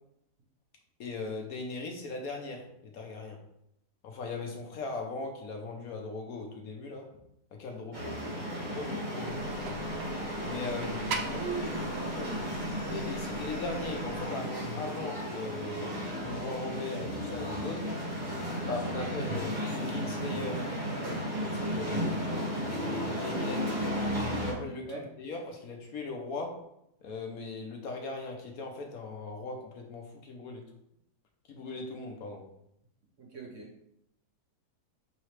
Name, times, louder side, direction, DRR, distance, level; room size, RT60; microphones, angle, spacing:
voice 1, 1.0-3.4 4.0-7.1 7.5-8.2 8.6-9.6 10.4-11.4 12.8-17.9 18.6-20.7 21.3-22.3 22.8-24.0 24.4-26.6 27.0-30.6 31.5-32.4, left 3 dB, 65° left, 2 dB, 1.0 m, -39 dB
sound 1, 7.9-24.5, equal, 30° right, 1.3 m, -34 dB
sound 2, 9.2-14.3, right 4 dB, 85° right, 0.5 m, -42 dB
voice 2, 11.3-12.4 24.9-25.0 33.2-33.7, right 5 dB, 55° right, -1 dB, 0.9 m, -39 dB
5.6 x 3.1 x 3.1 m, 0.77 s
omnidirectional pair, 1.8 m